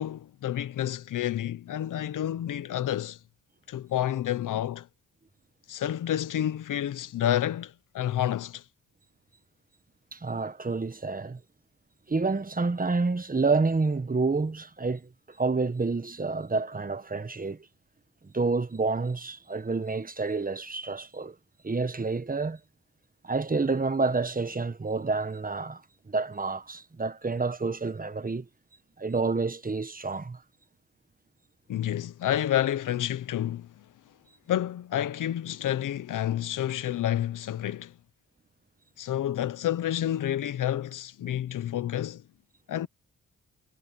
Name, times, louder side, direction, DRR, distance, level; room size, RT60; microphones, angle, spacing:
voice 1, 0.0-3.2 3.7-4.9 5.7-8.6 31.7-33.8 34.5-38.0 39.0-42.2 42.7-42.9, left 11 dB, 90° left, 0.9 m, -29 dB
voice 2, 10.1-11.4 12.1-15.1 15.4-17.7 18.2-21.3 21.6-22.6 23.2-25.8 26.1-28.5 29.0-30.4, right 3 dB, 30° right, 1.5 m, -28 dB
cardioid pair, 60°, 31 cm